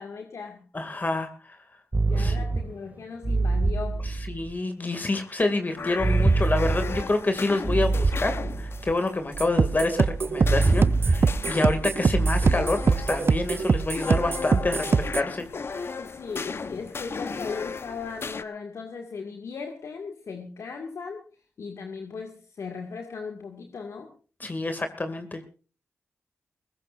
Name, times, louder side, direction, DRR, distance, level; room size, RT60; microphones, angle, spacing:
voice 1, 0.0-0.7 2.0-4.0 16.0-21.3 21.6-24.1, left 5 dB, 75° left, 4 dB, 2.1 m, -37 dB
voice 2, 0.7-1.6 2.1-2.4 4.0-15.9 24.4-25.5, left 2 dB, 35° left, 7 dB, 2.3 m, -28 dB
sound 1, 1.9-2.8 3.2-4.5 6.0-7.1 7.6-8.9 10.4-11.5 12.0-13.2, right 3 dB, 35° right, 2.1 m, -25 dB
sound 2, 5.8-18.4, left 4 dB, 55° left, 1.0 m, -36 dB
sound 3, 9.4-15.2, right 5 dB, 50° right, 0.6 m, -24 dB
21.0 x 18.0 x 2.6 m, 0.36 s
cardioid pair, 60°, 5 cm